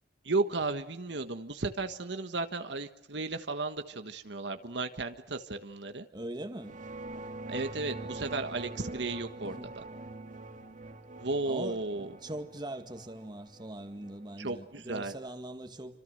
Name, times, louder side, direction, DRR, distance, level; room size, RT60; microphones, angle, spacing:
voice 1, 0.2-6.1 7.5-9.8 11.2-12.1 14.4-15.1, right 3 dB, 65° right, 1.4 m, -34 dB
voice 2, 6.1-6.8 9.4-9.7 11.5-16.0, right 1 dB, 25° right, 2.0 m, -41 dB
sound 1, 6.6-15.2, right 2 dB, 45° right, 2.0 m, -44 dB
27.0 x 26.5 x 6.7 m
head